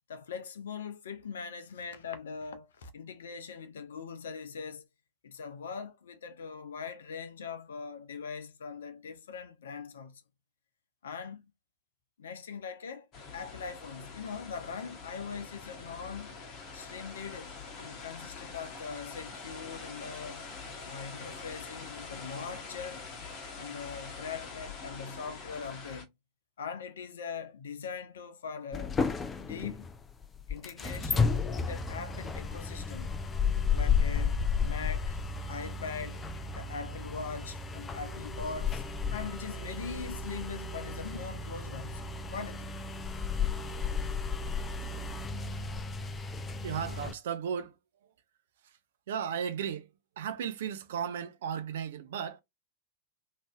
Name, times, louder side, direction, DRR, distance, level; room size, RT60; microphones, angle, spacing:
voice 1, 0.1-4.9 5.2-10.2 11.0-11.5 12.2-13.1 13.3-16.4 16.7-20.5 20.8-23.1 23.6-26.1 26.6-29.0 29.4-29.9 30.5-33.1 33.7-35.2 35.5-38.8 39.1-42.7, left 5 dB, 65° left, 0.6 m, -41 dB
sound 1, 13.1-26.1, left 4 dB, 35° left, 0.9 m, -45 dB
sound 2, 28.7-47.1, left 5 dB, 20° left, 0.4 m, -33 dB
voice 2, 46.6-48.1 48.6-48.8 49.1-52.4, right 8 dB, 60° right, 0.5 m, -35 dB
3.1 x 2.6 x 2.3 m
figure-of-eight pair, 90°, 0 cm